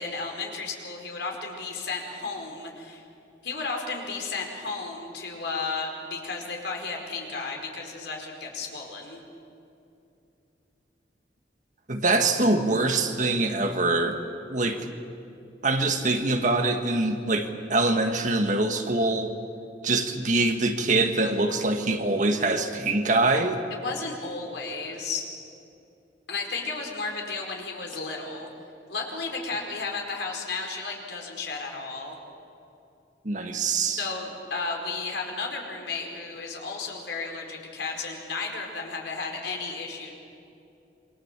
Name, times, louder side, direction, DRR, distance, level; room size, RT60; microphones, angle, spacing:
voice 1, 0.0-3.0 3.4-9.2 23.7-25.2 26.3-28.5 28.9-32.2 34.0-40.1, left 4 dB, 75° left, 1 dB, 4.8 m, -33 dB
voice 2, 11.9-14.2 14.5-14.9 15.6-19.4 19.8-23.6 33.2-34.0, right 2 dB, 45° right, 5 dB, 1.7 m, -24 dB
27.0 x 24.5 x 7.5 m, 2.7 s
head